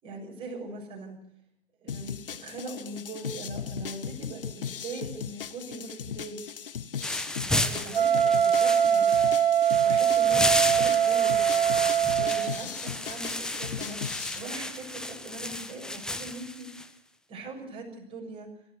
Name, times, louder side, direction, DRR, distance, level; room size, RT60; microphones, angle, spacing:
voice 1, 0.0-1.2 1.8-6.4 7.5-9.2 9.8-11.4 12.2-16.7 17.3-18.5, right 3 dB, 20° right, 0 dB, 7.0 m, -41 dB
sound 1, 1.9-14.4, left 8 dB, 65° left, 1.2 m, -38 dB
sound 2, 7.0-16.9, left 1 dB, ahead, 0.9 m, -33 dB
Wind instrument woodwind instrument, 7.9-12.6, right 9 dB, 60° right, 0.9 m, -22 dB
23.5 x 14.5 x 8.5 m, 0.68 s
figure-of-eight pair, 115°, 30 cm